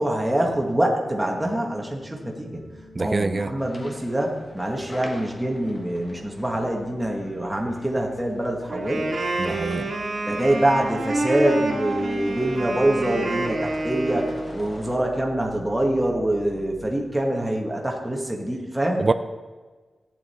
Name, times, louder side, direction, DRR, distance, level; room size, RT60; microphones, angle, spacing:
voice 1, 0.0-2.6 3.0-9.1 10.3-19.1, right 1 dB, 5° right, 0 dB, 1.3 m, -25 dB
sound 1, 0.9-16.9, right 1 dB, 50° left, 3.5 m, -47 dB
voice 2, 3.0-3.5 9.4-9.9 19.0-19.1, right 3 dB, 30° right, 10 dB, 0.4 m, -24 dB
sound 2, 3.6-15.0, left 1 dB, 30° left, 1.1 m, -45 dB
Wind instrument woodwind instrument, 8.7-14.6, right 2 dB, 50° right, 1.8 m, -28 dB
14.5 x 8.8 x 4.2 m, 1.3 s
wide cardioid pair, 170°, 0 cm